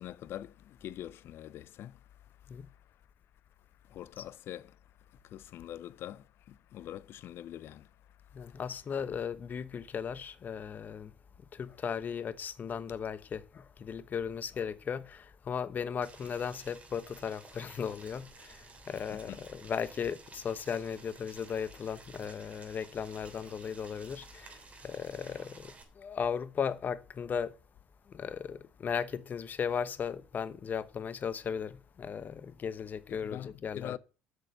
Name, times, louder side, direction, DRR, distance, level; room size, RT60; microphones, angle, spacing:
voice 1, 0.0-3.0 3.8-8.6 19.1-19.4 33.1-34.0, left 12 dB, 55° left, 0.5 m, -45 dB
voice 2, 8.3-11.1 11.5-24.6 24.8-27.5 28.1-34.0, left 7 dB, 40° left, 1.0 m, -36 dB
Boiling, 16.0-25.8, right 4 dB, 30° right, 3.1 m, -54 dB
8.0 x 6.5 x 6.7 m
hypercardioid pair, 75°, 5 cm